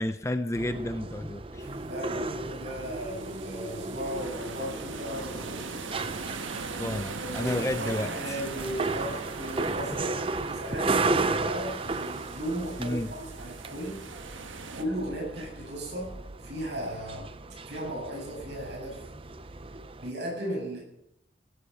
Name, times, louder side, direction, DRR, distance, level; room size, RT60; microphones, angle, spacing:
voice 1, 0.0-1.7 6.8-8.4 12.8-13.1, left 1 dB, 15° left, 10 dB, 0.5 m, -31 dB
sound 1, 0.5-20.1, right 3 dB, 30° right, 0.6 m, -35 dB
sound 2, 1.6-14.8, right 4 dB, 90° right, 1.4 m, -41 dB
voice 2, 1.8-5.7 6.8-10.2 10.5-14.0 14.7-17.3 17.7-19.0 20.0-20.8, equal, 60° right, -2 dB, 7.5 m, -36 dB
16.5 x 9.8 x 6.9 m, 0.82 s
head